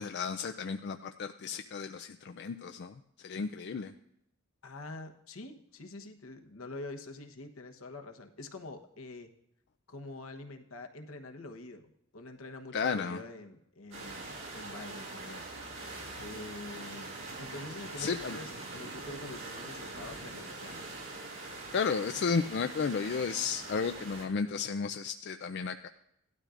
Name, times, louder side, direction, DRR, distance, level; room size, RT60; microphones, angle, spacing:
voice 1, 0.0-2.9 3.2-3.9 12.7-13.2 18.0-18.4 21.7-25.9, left 5 dB, 55° left, 7 dB, 0.4 m, -33 dB
voice 2, 4.6-9.3 9.9-15.9 16.2-20.8, left 2 dB, 80° left, 5 dB, 1.1 m, -46 dB
sound 1, 13.9-24.3, right 2 dB, 75° right, 4.9 m, -43 dB
17.0 x 12.0 x 2.5 m, 0.80 s
head